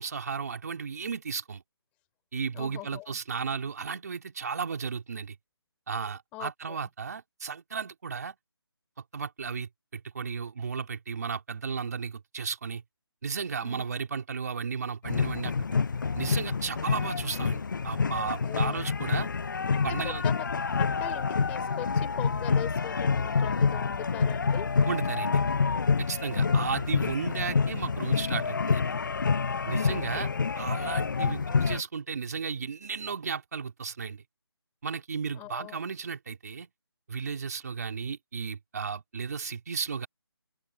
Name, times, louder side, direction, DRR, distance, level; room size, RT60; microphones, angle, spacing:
voice 1, 0.0-1.6 2.3-5.3 5.9-8.3 9.1-12.8 13.2-15.5 16.1-19.3 19.8-20.2 24.9-25.4 26.0-28.8 29.6-30.3 30.5-34.2 34.8-36.7 37.1-40.1, right 5 dB, 40° right, 3.3 m, -34 dB
voice 2, 2.5-3.2 6.3-6.8 13.6-13.8 18.4-18.9 19.7-24.7 29.8-30.4 35.3-35.8, left 20 dB, 10° left, 3.6 m, -41 dB
sound 1, 15.0-31.8, left 5 dB, 50° left, 0.4 m, -27 dB
figure-of-eight pair, 170°, 14 cm